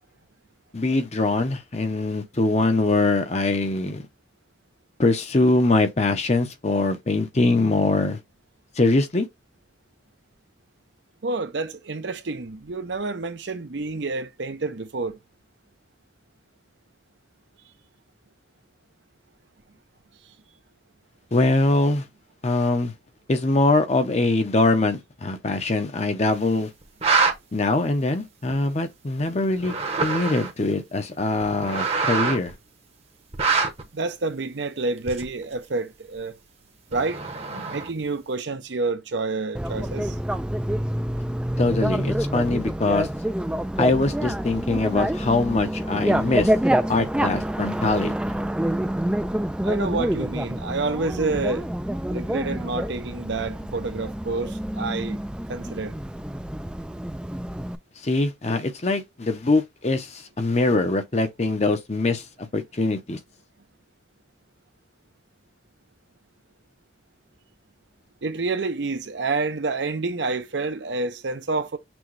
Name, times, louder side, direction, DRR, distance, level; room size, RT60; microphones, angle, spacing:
voice 1, 0.7-4.0 5.0-8.2 8.8-9.3 21.3-22.0 22.4-22.9 23.3-26.7 27.5-29.7 30.0-32.5 41.6-43.1 43.8-46.5 46.9-48.2 58.0-62.2 62.5-63.2, left 2 dB, 35° left, 0.7 m, -22 dB
voice 2, 11.2-15.2 33.9-36.3 36.9-37.2 37.7-40.1 49.6-51.7 52.1-55.2 55.5-55.9 68.2-71.8, right 3 dB, 65° right, 0.7 m, -28 dB
sound 1, 26.8-27.3 28.5-28.6 29.5-30.6 31.4-32.5 33.3-33.8 35.1-35.4 36.9-38.0, right 4 dB, 35° right, 0.9 m, -24 dB
Bicycle, 39.5-57.7, right 1 dB, 5° right, 0.3 m, -27 dB
6.1 x 2.3 x 3.2 m
head